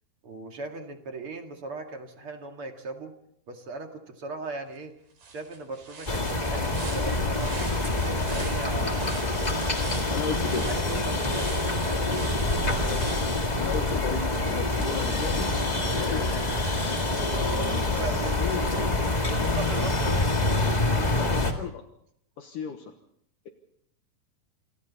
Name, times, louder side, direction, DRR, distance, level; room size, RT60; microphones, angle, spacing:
voice 1, 0.2-3.1 3.5-4.9 5.3-9.0 10.7-12.0 17.3-18.4 19.3-20.3, right 3 dB, 45° right, 4 dB, 2.4 m, -38 dB
sound 1, 4.8-4.9 5.2-13.9, right 4 dB, 75° right, 6.4 m, -43 dB
sound 2, 6.1-21.5, left 2 dB, 20° left, 1.1 m, -26 dB
voice 2, 10.1-10.7 12.8-16.5 18.0-18.9 21.0-21.9 22.4-22.9, left 7 dB, 65° left, 5 dB, 2.7 m, -35 dB
28.5 x 25.5 x 4.2 m, 0.71 s
omnidirectional pair, 4.3 m